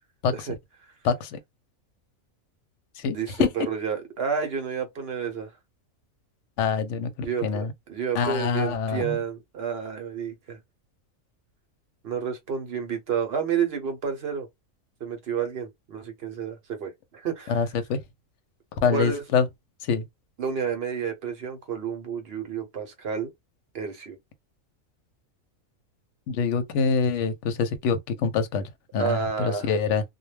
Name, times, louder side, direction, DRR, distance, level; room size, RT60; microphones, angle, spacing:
voice 1, 1.0-1.4 3.0-3.5 6.6-7.7 8.2-9.2 17.5-18.0 18.8-19.5 19.9-20.0 26.3-28.6 28.9-30.0, left 6 dB, 70° left, 0.8 m, -25 dB
voice 2, 3.1-5.5 7.2-10.6 12.0-14.5 15.0-17.6 18.9-19.2 20.4-23.3 23.7-24.2 29.0-29.7, right 6 dB, 55° right, 0.8 m, -30 dB
2.2 x 2.1 x 3.1 m
omnidirectional pair, 1.4 m